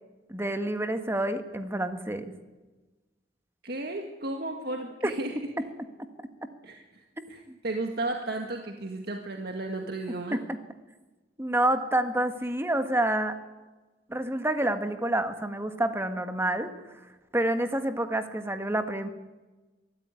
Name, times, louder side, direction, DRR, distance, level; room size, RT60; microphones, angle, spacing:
voice 1, 0.3-2.3 5.0-5.1 7.5-7.6 10.3-10.6 11.4-13.3 14.1-16.7 17.3-19.1, right 1 dB, 15° right, 8 dB, 1.6 m, -28 dB
voice 2, 3.6-5.6 6.6-10.4, right 2 dB, 60° right, 3 dB, 1.8 m, -34 dB
23.0 x 13.5 x 9.8 m, 1.2 s
head